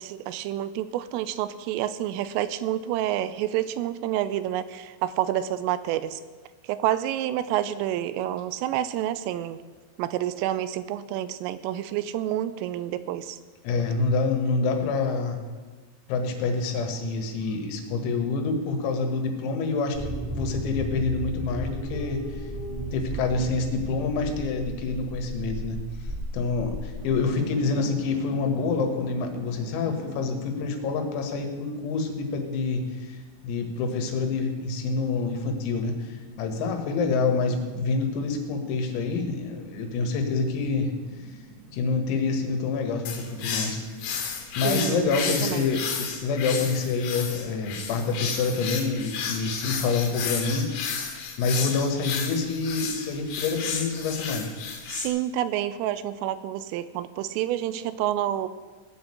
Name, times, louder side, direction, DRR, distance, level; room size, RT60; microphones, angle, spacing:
voice 1, 0.0-6.2 6.6-9.6 10.0-13.4 44.6-45.7 54.9-58.5, right 12 dB, 85° right, 14 dB, 3.1 m, -28 dB
voice 2, 13.6-15.4 16.1-22.4 22.9-25.8 26.3-33.2 33.4-40.9 41.7-43.8 44.2-50.7 51.0-54.5, left 4 dB, 90° left, 5 dB, 4.3 m, -27 dB
sound 1, 19.9-27.2, right 1 dB, 10° left, 0.4 m, -34 dB
sound 2, 27.0-45.9, right 2 dB, 30° right, 1.5 m, -46 dB
sound 3, 43.1-55.1, left 6 dB, 60° left, 3.3 m, -32 dB
17.0 x 6.4 x 8.6 m, 1.4 s
omnidirectional pair, 5.9 m